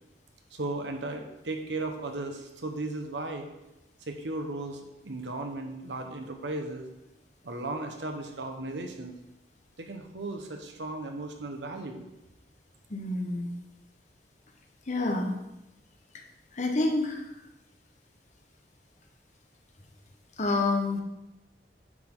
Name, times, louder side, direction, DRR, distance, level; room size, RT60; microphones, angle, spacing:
voice 1, 0.5-3.5 4.1-4.8 5.0-6.9 7.4-9.1 9.8-12.1, right 2 dB, 90° right, 4 dB, 1.2 m, -36 dB
voice 2, 12.9-13.5 14.9-15.3 16.5-17.2 20.4-21.0, left 2 dB, 45° left, 3 dB, 1.1 m, -27 dB
9.5 x 6.1 x 3.8 m, 0.94 s
head